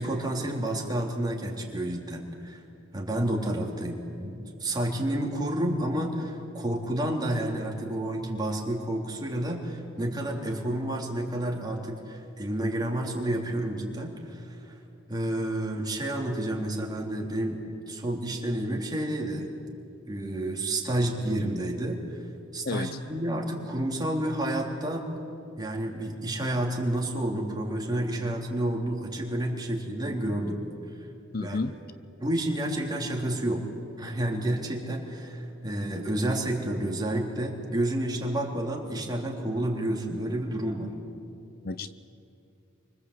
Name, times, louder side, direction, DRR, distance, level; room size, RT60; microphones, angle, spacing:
voice 1, 0.0-2.6 2.9-14.7 15.1-17.6 17.9-19.5 20.1-22.0 22.5-25.1 25.6-30.6 31.4-31.6 32.2-33.6 34.0-40.9, right 1 dB, 20° right, -1 dB, 3.6 m, -30 dB
voice 2, 22.6-23.0 31.3-31.7 41.6-41.9, left 3 dB, 50° left, 13 dB, 0.7 m, -31 dB
28.5 x 25.0 x 8.3 m, 2.6 s
head